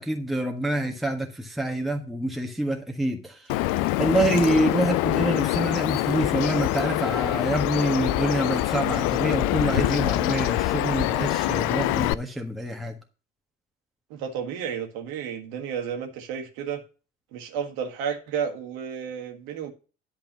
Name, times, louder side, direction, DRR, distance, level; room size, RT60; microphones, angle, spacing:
voice 1, 0.0-3.4 4.0-12.9, right 1 dB, ahead, 1.5 m, -26 dB
Bird vocalization bird call bird song, 3.5-12.1, left 16 dB, 60° left, 0.5 m, -25 dB
voice 2, 14.1-16.8 17.3-19.7, right 7 dB, 65° right, 1.8 m, -32 dB
10.5 x 4.0 x 7.4 m
figure-of-eight pair, 50°, 38 cm